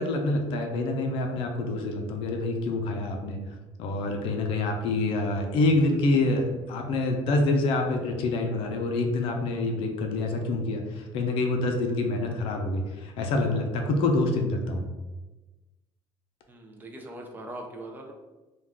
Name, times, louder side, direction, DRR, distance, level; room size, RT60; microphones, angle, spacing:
voice 1, 0.0-3.4 3.8-14.9, left 2 dB, 65° left, 3 dB, 0.5 m, -26 dB
voice 2, 16.5-18.1, right 1 dB, 20° right, 1 dB, 0.4 m, -41 dB
2.3 x 2.3 x 3.5 m, 1.1 s
cardioid pair, 150°, 10 cm